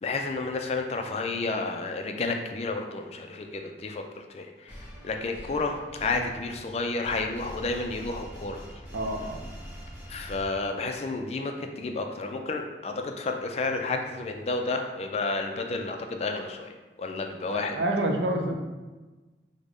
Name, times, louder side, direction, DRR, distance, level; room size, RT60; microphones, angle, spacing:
voice 1, 0.0-8.6 10.1-17.8, left 3 dB, 35° left, 4 dB, 0.3 m, -31 dB
sound 1, 4.7-11.0, equal, 10° right, 0.7 m, -44 dB
voice 2, 8.9-9.4 17.5-18.6, right 1 dB, 90° right, 2 dB, 0.5 m, -28 dB
4.9 x 2.1 x 3.4 m, 1.2 s
head